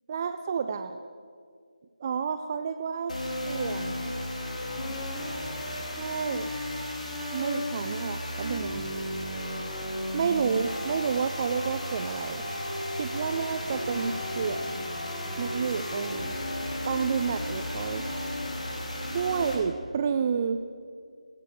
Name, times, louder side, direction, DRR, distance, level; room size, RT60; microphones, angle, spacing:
voice 1, 0.1-1.0 2.0-3.1 3.5-4.1 5.7-6.5 7.3-8.8 10.1-12.4 13.0-14.9 15.4-16.3 16.8-18.0 19.1-20.6, right 6 dB, 25° right, 9 dB, 0.4 m, -30 dB
sound 1, 3.1-19.5, left 1 dB, 70° left, 4.4 m, -34 dB
15.0 x 13.5 x 6.7 m, 2.1 s
figure-of-eight pair, 165°, 4 cm